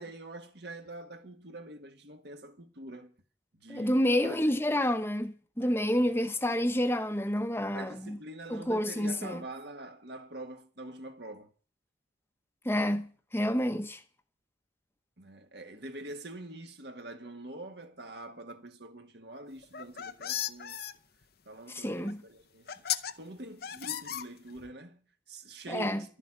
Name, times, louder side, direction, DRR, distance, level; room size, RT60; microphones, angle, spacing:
voice 1, 0.0-3.1 3.6-4.4 5.6-5.8 7.7-11.5 15.2-20.8 21.5-22.7 23.2-26.2, right 2 dB, 55° right, 1.8 m, -45 dB
voice 2, 3.7-8.2 8.5-9.4 12.6-14.0 21.7-22.2 25.7-26.0, equal, 10° left, 1.0 m, -29 dB
sound 1, 19.6-20.9 22.1-22.2 22.7-23.1 23.6-24.7, left 10 dB, 50° left, 0.7 m, -35 dB
12.5 x 7.2 x 10.0 m
head